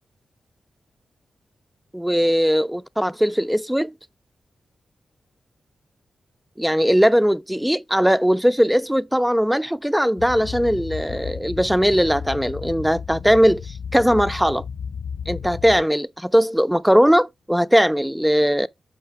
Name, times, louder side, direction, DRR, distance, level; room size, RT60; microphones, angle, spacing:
voice 1, 1.9-3.9 6.6-14.6 15.3-18.7, equal, 5° right, 0.4 m, -19 dB
sound 1, 10.2-15.8, left 6 dB, 65° left, 0.4 m, -33 dB
6.4 x 5.6 x 3.5 m
wide cardioid pair, 100°, 0 cm